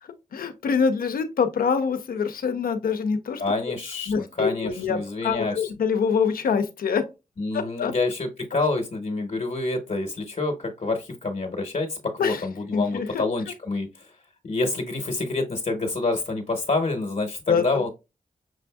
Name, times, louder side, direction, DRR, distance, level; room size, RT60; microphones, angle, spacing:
voice 1, 0.3-3.4 4.1-7.0 7.5-7.9 8.5-8.6 12.2-12.4 12.7-13.2 17.5-17.8, left 6 dB, 90° left, 0.6 m, -25 dB
voice 2, 3.4-5.7 7.4-14.1 14.4-17.9, left 3 dB, 55° left, 0.9 m, -27 dB
6.2 x 2.6 x 2.2 m
cardioid pair, 55°, 15 cm